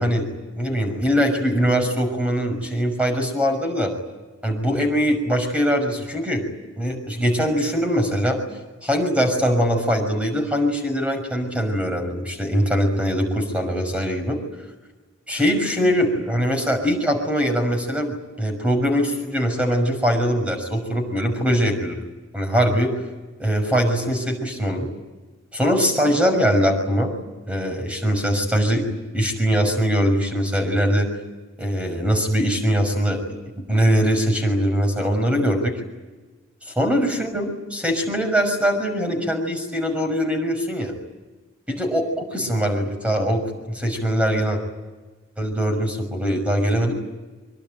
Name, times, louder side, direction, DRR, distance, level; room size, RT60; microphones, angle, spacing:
voice 1, 0.0-3.9 4.4-6.4 6.8-8.4 8.8-14.4 15.3-22.0 22.3-22.9 23.4-24.9 25.5-27.1 27.5-28.9 29.1-31.1 31.6-33.2 33.6-35.8 36.7-40.9 41.7-43.4 43.7-44.6 45.4-46.9, equal, 5° right, 4 dB, 6.0 m, -22 dB
24.5 x 24.5 x 9.2 m, 1.2 s
head